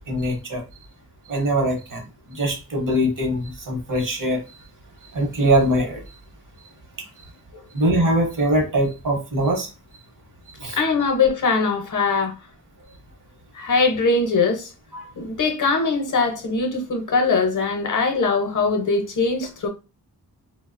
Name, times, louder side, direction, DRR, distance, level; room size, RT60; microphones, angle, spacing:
voice 1, 0.1-0.6 1.3-2.0 2.3-4.4 5.1-6.0 7.7-9.7 10.6-10.8 14.9-15.1, right 1 dB, 55° right, 0.8 m, -22 dB
voice 2, 10.7-12.3 13.5-14.7 15.2-19.7, left 4 dB, 50° left, 0.6 m, -21 dB
2.7 x 2.0 x 2.4 m
wide cardioid pair, 125°, 39 cm